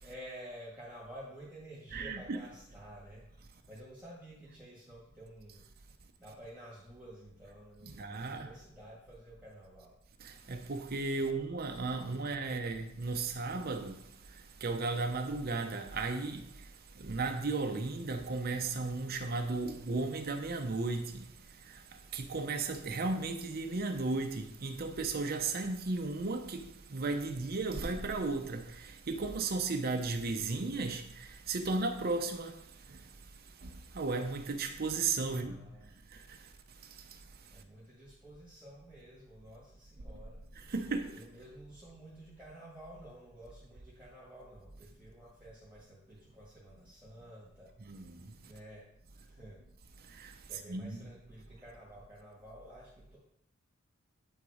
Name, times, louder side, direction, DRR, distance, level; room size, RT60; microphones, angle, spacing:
voice 1, 0.0-3.3 3.7-5.6 6.2-9.9 11.2-11.4 35.3-35.9 37.5-40.4 41.1-47.7 48.4-48.8 49.1-49.6 50.4-53.2, right 1 dB, 10° right, 1.7 m, -51 dB
voice 2, 1.9-2.4 7.9-8.5 10.2-14.0 14.6-16.4 17.0-21.3 22.1-26.6 26.9-32.5 33.6-33.7 33.9-35.6 40.7-41.1 47.9-48.2 50.2-50.3 50.7-51.1, right 3 dB, 50° right, 0.7 m, -35 dB
9.0 x 4.0 x 4.9 m
head